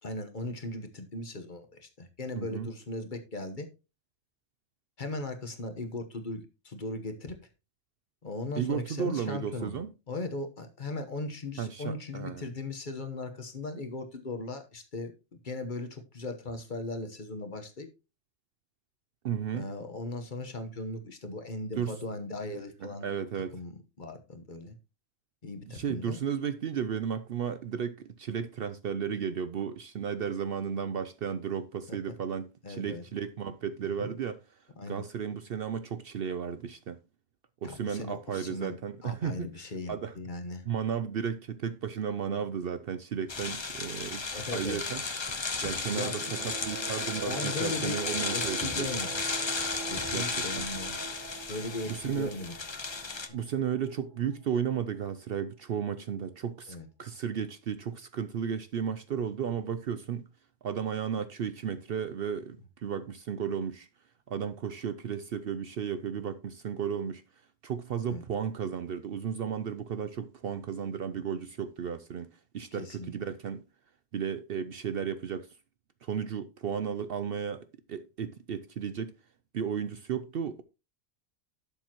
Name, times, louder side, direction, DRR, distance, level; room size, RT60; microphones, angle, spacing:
voice 1, 0.0-3.7 5.0-7.4 8.2-9.8 10.1-15.1 15.4-17.9 19.5-23.1 23.5-24.8 25.4-26.2 31.9-32.0 32.6-33.1 33.8-34.1 34.8-35.0 37.6-40.6 44.3-44.8 45.9-46.4 47.3-48.0 48.3-49.1 49.9-51.0 51.5-52.6 53.3-53.4 56.7-56.9 68.1-68.2 72.7-73.1, left 2 dB, 40° left, 1.2 m, -38 dB
voice 2, 2.4-2.7 8.6-9.9 11.6-12.5 19.2-19.7 21.8-21.9 22.8-23.6 25.7-34.4 34.9-37.0 37.6-39.5 39.9-40.1 40.7-44.2 44.5-45.0 45.6-48.9 50.1-50.7 51.9-52.3 53.3-60.3 60.6-63.9 64.3-67.2 67.6-73.6 74.1-75.5 76.0-79.1 79.5-80.6, right 7 dB, 60° right, 0.7 m, -34 dB
sound 1, 43.3-53.3, left 4 dB, 25° left, 0.7 m, -34 dB
sound 2, 45.5-54.1, right 5 dB, 75° right, 1.2 m, -43 dB
12.0 x 7.0 x 2.9 m
omnidirectional pair, 1.3 m